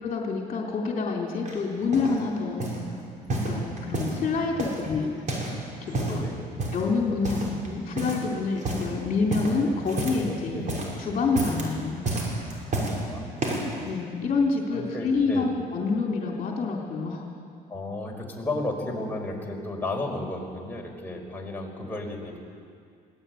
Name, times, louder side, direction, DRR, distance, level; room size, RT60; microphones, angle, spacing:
voice 1, 0.0-2.8 3.4-5.2 5.9-6.2 6.7-10.6 11.0-12.1 13.8-17.2, left 4 dB, 45° left, -1 dB, 3.4 m, -27 dB
sound 1, 1.4-2.2 2.6-2.9 3.3-4.2 4.6-5.6 5.8-6.2 6.6-6.9 7.2-7.7 8.0-8.3 8.6-8.9 9.3-10.3 10.6-11.0 11.3-11.7 12.0-13.0 13.4-13.7 14.4-14.5, right 2 dB, 45° right, 6.2 m, -30 dB
voice 2, 4.6-5.1 6.0-6.4 10.5-10.7 12.8-13.4 14.7-15.5 17.7-22.4, left 2 dB, 10° left, -1 dB, 5.0 m, -34 dB
22.0 x 17.0 x 9.3 m, 2.3 s
cardioid pair, 110°, 17 cm